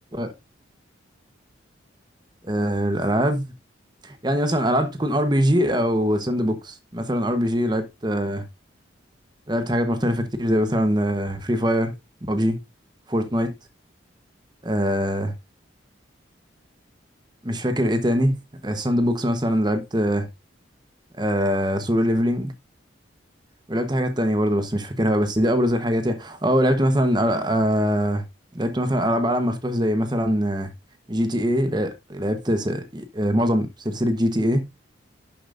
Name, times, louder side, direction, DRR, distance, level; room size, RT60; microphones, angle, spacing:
voice 1, 2.4-3.5 4.0-8.4 9.5-12.0 12.3-12.6 13.1-13.5 14.6-15.3 17.4-18.4 18.6-20.3 21.2-22.5 23.7-28.2 28.5-30.7 31.1-34.7, equal, 20° right, 1.1 m, -22 dB
11.0 x 7.0 x 2.6 m
head